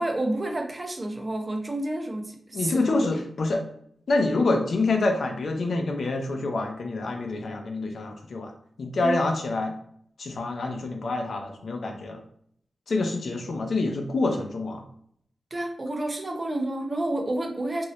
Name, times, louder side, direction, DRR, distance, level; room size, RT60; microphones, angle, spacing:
voice 1, 0.0-3.0 9.0-9.2 15.5-17.9, right 1 dB, 35° right, 2 dB, 0.6 m, -29 dB
voice 2, 2.5-3.6 4.1-8.5 8.8-9.7 10.2-12.2 12.9-14.8, left 3 dB, 70° left, 4 dB, 0.5 m, -26 dB
2.7 x 2.6 x 3.1 m, 0.67 s
cardioid pair, 75°, 0 cm